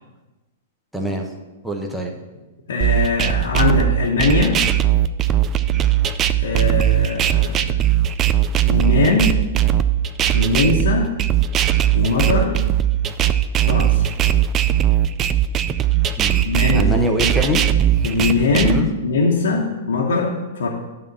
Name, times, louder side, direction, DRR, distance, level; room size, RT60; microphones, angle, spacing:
voice 1, 0.9-1.3 1.6-2.1 16.2-16.4 16.7-17.6 18.6-18.9, equal, 5° right, 0 dB, 1.0 m, -23 dB
voice 2, 2.7-4.6 6.4-7.8 8.7-9.3 10.3-11.1 11.9-12.6 13.6-14.1 16.4-16.9 18.0-20.7, left 3 dB, 85° left, -3 dB, 1.2 m, -20 dB
sound 1, 2.8-18.8, right 11 dB, 25° right, 0.4 m, -18 dB
9.4 x 3.6 x 6.8 m, 1.1 s
hypercardioid pair, 135°, 0 cm